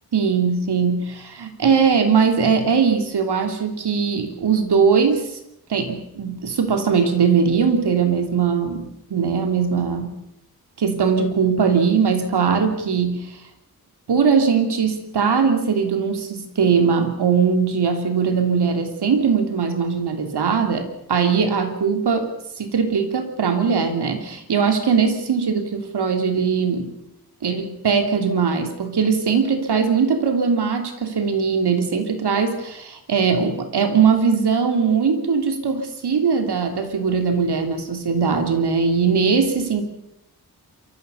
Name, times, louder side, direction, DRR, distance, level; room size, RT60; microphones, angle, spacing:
voice 1, 0.1-5.4 5.7-10.1 10.8-13.4 14.1-22.3 22.6-26.9 27.4-39.8, right 6 dB, 80° right, 6 dB, 3.2 m, -20 dB
27.5 x 14.5 x 7.1 m, 0.82 s
wide cardioid pair, 105°, 39 cm